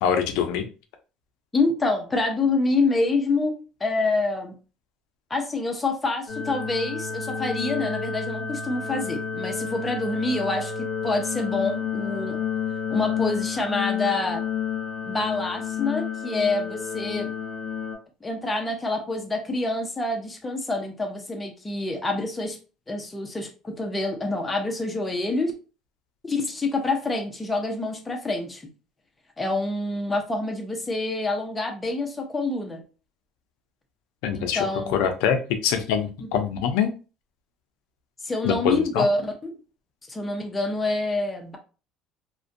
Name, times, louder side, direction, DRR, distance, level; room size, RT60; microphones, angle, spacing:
voice 1, 0.0-0.6 34.2-34.7 34.9-35.4 35.6-36.9 38.4-39.1, left 8 dB, 85° left, 6 dB, 0.4 m, -24 dB
voice 2, 1.5-4.5 5.3-10.7 11.0-12.4 12.9-14.4 15.0-17.3 18.2-22.6 22.9-25.5 26.2-28.6 29.4-32.8 34.3-35.0 36.2-36.3 38.2-39.6 40.1-41.6, left 2 dB, 15° left, 2 dB, 0.6 m, -27 dB
sound 1, 6.3-17.9, left 7 dB, 30° left, 1.1 m, -30 dB
2.5 x 2.1 x 2.5 m, 0.33 s
cardioid pair, 135°, 0 cm